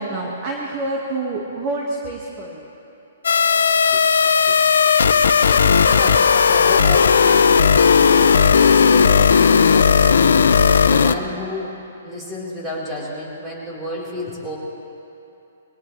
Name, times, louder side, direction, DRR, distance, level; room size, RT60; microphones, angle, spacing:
voice 1, 0.0-2.7, right 2 dB, 35° right, -3 dB, 1.9 m, -27 dB
sound 1, 3.2-11.1, left 6 dB, 80° left, 0.6 m, -14 dB
voice 2, 3.7-4.0 4.5-4.6 5.4-10.2 10.5-14.6, left 1 dB, 15° right, -6 dB, 4.4 m, -32 dB
22.5 x 18.5 x 3.4 m, 2.9 s
hypercardioid pair, 145°, 0 cm